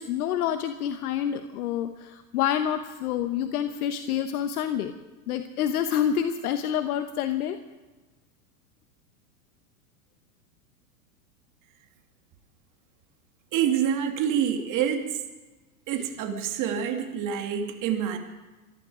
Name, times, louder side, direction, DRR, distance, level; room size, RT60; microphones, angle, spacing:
voice 1, 0.0-4.9 5.3-7.6, left 9 dB, 70° left, 8 dB, 1.1 m, -27 dB
voice 2, 13.5-15.2 15.9-18.2, right 9 dB, 40° right, 4 dB, 2.5 m, -27 dB
25.0 x 11.5 x 5.0 m, 1.2 s
hypercardioid pair, 105°, 46 cm